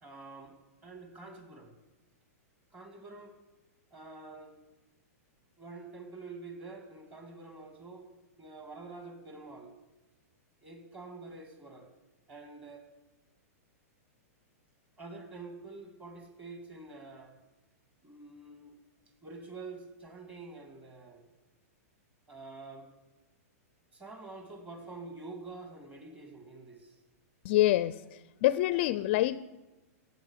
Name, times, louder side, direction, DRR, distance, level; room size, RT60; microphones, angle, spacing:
voice 1, 0.0-0.5 0.8-1.8 2.7-3.4 3.9-4.6 5.6-8.1 8.4-9.7 10.6-11.9 12.3-12.9 15.0-17.3 18.0-18.8 19.2-21.2 22.3-22.9 23.9-27.0, right 3 dB, 15° right, 5 dB, 2.2 m, -47 dB
voice 2, 27.4-27.9 28.4-29.4, left 15 dB, 40° left, 16 dB, 0.4 m, -25 dB
16.5 x 8.1 x 8.1 m, 1.1 s
supercardioid pair, 160°, 8 cm